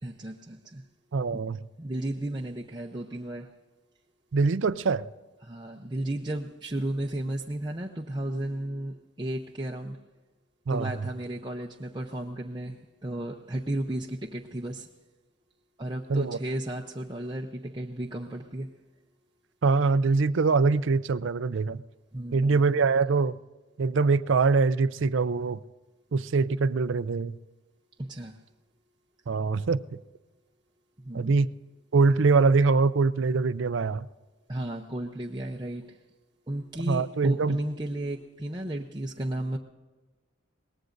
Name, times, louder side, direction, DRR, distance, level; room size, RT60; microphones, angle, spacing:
voice 1, 0.0-0.8 1.3-1.4 1.8-3.5 5.4-10.0 10.7-14.9 15.8-18.8 22.1-22.6 28.0-28.4 31.0-31.4 34.5-36.0 36.5-39.6, right 1 dB, 20° right, -1 dB, 0.7 m, -34 dB
voice 2, 1.1-1.6 4.3-5.0 10.7-11.0 16.1-16.4 19.6-21.8 22.3-23.4 23.8-25.6 26.1-27.4 29.3-29.8 31.1-31.5 31.9-34.0 36.8-37.6, right 4 dB, 65° right, 15 dB, 0.5 m, -23 dB
22.5 x 19.0 x 2.6 m, 1.2 s
head